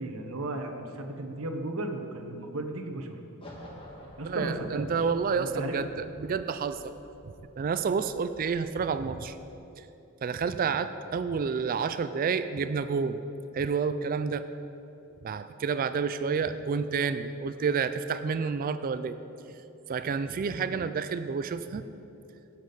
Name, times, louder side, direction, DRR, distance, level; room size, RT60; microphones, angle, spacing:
voice 1, 0.0-3.2 4.2-5.8 10.5-10.6, right 2 dB, 70° right, 5 dB, 1.0 m, -35 dB
sound 1, 3.4-9.6, left 1 dB, 25° left, 1.6 m, -52 dB
voice 2, 4.2-6.8 7.6-9.4 9.8-9.9 10.2-13.2 13.5-14.5 15.2-19.2 19.9-21.9, right 5 dB, 40° right, 11 dB, 0.3 m, -29 dB
17.5 x 7.3 x 4.0 m, 2.8 s
head